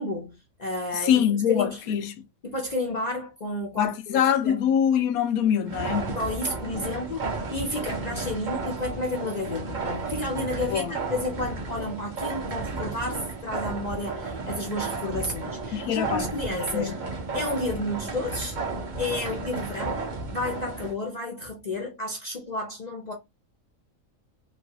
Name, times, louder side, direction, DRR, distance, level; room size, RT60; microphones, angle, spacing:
voice 1, 0.0-2.0 2.4-4.6 6.2-17.0 17.3-18.6 19.0-23.1, left 2 dB, 60° left, 0.4 m, -31 dB
voice 2, 0.9-2.1 3.8-6.2 10.6-11.0 15.7-16.3 16.7-17.0, left 9 dB, 90° left, 1.1 m, -24 dB
sound 1, 5.7-21.0, right 4 dB, 45° right, 0.7 m, -33 dB
3.1 x 2.3 x 2.7 m
omnidirectional pair, 1.4 m